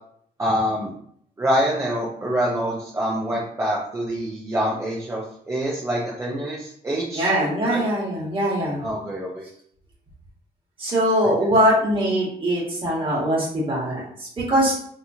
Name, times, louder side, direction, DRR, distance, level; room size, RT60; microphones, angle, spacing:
voice 1, 0.4-0.9 1.4-7.3 7.7-7.8 8.8-9.4, equal, 20° right, -5 dB, 0.6 m, -25 dB
voice 2, 7.1-8.8 10.8-14.7, equal, 35° right, -4 dB, 1.4 m, -22 dB
3.5 x 2.9 x 2.7 m, 0.64 s
wide cardioid pair, 165°, 16 cm